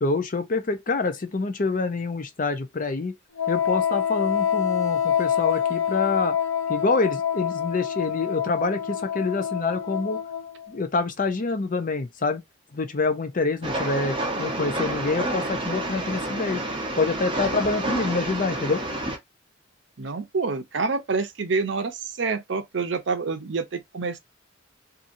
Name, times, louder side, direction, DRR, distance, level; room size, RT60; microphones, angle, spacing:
voice 1, 0.0-3.1 3.5-6.3 6.7-10.2 10.7-12.4 12.7-16.6 16.9-18.8, left 3 dB, 45° left, 0.5 m, -26 dB
Wind instrument woodwind instrument, 3.4-10.7, left 8 dB, 85° left, 0.7 m, -26 dB
Train, 13.6-19.2, right 1 dB, 25° right, 0.8 m, -29 dB
voice 2, 20.0-24.2, right 4 dB, 65° right, 0.6 m, -27 dB
2.8 x 2.5 x 2.6 m
head